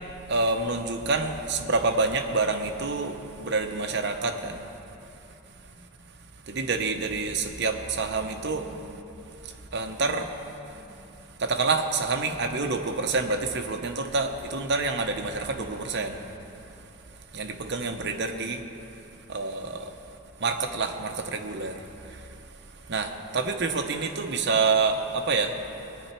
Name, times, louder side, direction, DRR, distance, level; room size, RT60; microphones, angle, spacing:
voice 1, 0.3-4.6 6.5-9.0 9.4-10.3 11.4-16.2 17.3-18.6 19.3-19.9 20.4-21.8 22.9-25.5, right 3 dB, 50° right, 4 dB, 0.8 m, -27 dB
19.0 x 10.0 x 4.4 m, 2.9 s
head